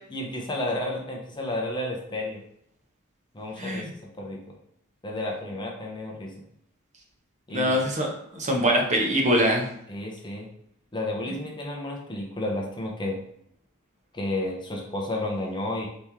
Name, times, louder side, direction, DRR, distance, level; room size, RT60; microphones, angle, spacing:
voice 1, 0.1-2.4 3.3-4.4 5.0-6.3 7.5-7.8 9.9-10.5 10.9-13.2 14.1-15.9, left 1 dB, 20° left, -1 dB, 0.7 m, -31 dB
voice 2, 3.6-3.9 7.5-9.7, equal, 35° right, 0 dB, 0.9 m, -23 dB
4.3 x 3.1 x 3.5 m, 0.69 s
head